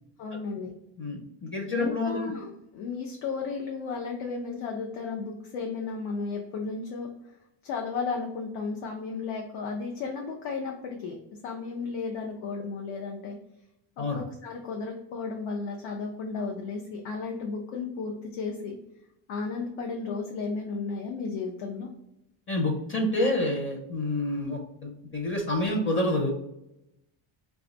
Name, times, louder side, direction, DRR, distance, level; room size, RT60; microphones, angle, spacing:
voice 1, 0.2-0.7 1.7-7.1 7.6-11.2 11.4-13.4 14.0-18.8 19.3-21.9, left 4 dB, 75° left, 0 dB, 0.7 m, -34 dB
voice 2, 1.0-2.3 14.0-14.2 22.5-26.3, left 2 dB, 25° left, 2 dB, 0.6 m, -28 dB
2.5 x 2.3 x 4.0 m, 0.85 s
cardioid pair, 135°, 49 cm